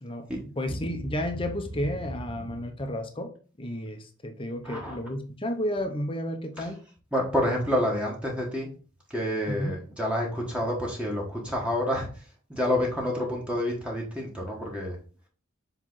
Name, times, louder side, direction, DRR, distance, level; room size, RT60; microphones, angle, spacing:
voice 1, 0.0-6.8 9.5-9.7, equal, 25° left, 0.8 m, -32 dB
voice 2, 4.6-5.0 7.1-8.7 9.1-12.1 12.5-14.9, left 1 dB, 5° right, 1.3 m, -28 dB
7.4 x 3.3 x 3.9 m
head